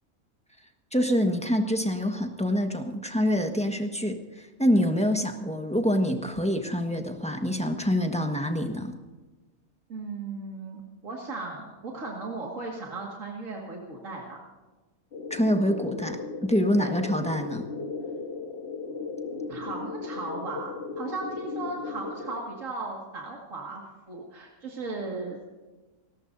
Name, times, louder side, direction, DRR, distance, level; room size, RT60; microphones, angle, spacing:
voice 1, 0.9-8.9 15.3-17.6, equal, 5° left, 3 dB, 1.4 m, -26 dB
voice 2, 9.9-14.4 16.8-17.0 19.5-25.4, right 3 dB, 65° right, -2 dB, 2.5 m, -36 dB
sound 1, 15.1-22.4, left 4 dB, 45° left, 1.5 m, -36 dB
30.0 x 14.0 x 2.7 m, 1.2 s
omnidirectional pair, 1.5 m